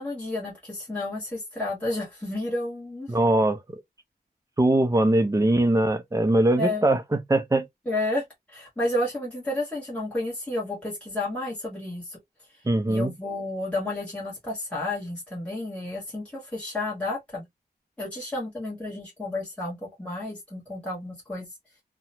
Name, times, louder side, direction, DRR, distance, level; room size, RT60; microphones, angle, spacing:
voice 1, 0.0-3.1 6.6-6.8 7.9-12.2 12.9-17.4 18.0-21.5, left 2 dB, 5° left, 1.3 m, -31 dB
voice 2, 3.1-3.8 4.6-7.7 12.6-13.1, right 1 dB, 20° right, 0.5 m, -22 dB
2.8 x 2.2 x 2.6 m
wide cardioid pair, 90°, 17 cm